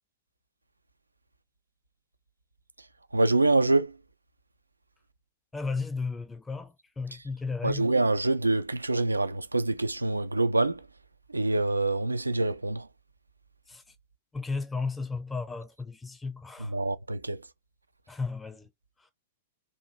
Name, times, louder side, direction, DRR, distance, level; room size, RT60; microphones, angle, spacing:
voice 1, 3.1-3.9 7.6-10.8 11.3-12.9 16.7-17.4, right 2 dB, 85° right, 0.3 m, -25 dB
voice 2, 5.5-7.9 13.7-13.9 14.3-16.8 18.1-18.7 19.0-19.1, left 4 dB, 10° left, 0.6 m, -34 dB
2.5 x 2.5 x 2.9 m
figure-of-eight pair, 105°, 0 cm